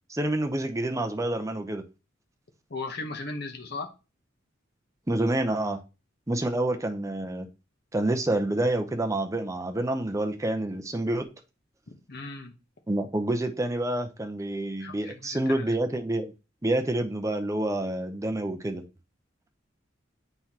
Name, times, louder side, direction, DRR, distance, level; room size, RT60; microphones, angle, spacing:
voice 1, 0.1-1.8 5.1-5.8 6.3-7.5 7.9-11.3 12.9-16.3 16.6-18.9, right 1 dB, 15° right, 5 dB, 0.6 m, -28 dB
voice 2, 2.7-3.9 11.9-12.5 14.8-15.7, left 3 dB, 55° left, 4 dB, 0.9 m, -37 dB
7.8 x 4.5 x 2.8 m, 0.30 s
head